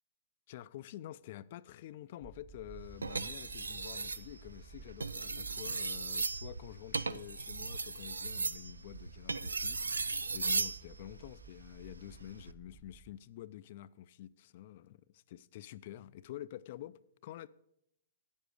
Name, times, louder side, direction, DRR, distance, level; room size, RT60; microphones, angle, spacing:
voice 1, 0.5-17.5, left 13 dB, 50° left, 0.4 m, -48 dB
sound 1, 2.2-13.1, right 4 dB, 5° right, 0.7 m, -55 dB
sound 2, 3.0-4.2 4.9-10.8 12.2-12.5, right 4 dB, 85° right, 0.3 m, -36 dB
8.8 x 7.1 x 6.4 m
hypercardioid pair, 120°, 0 cm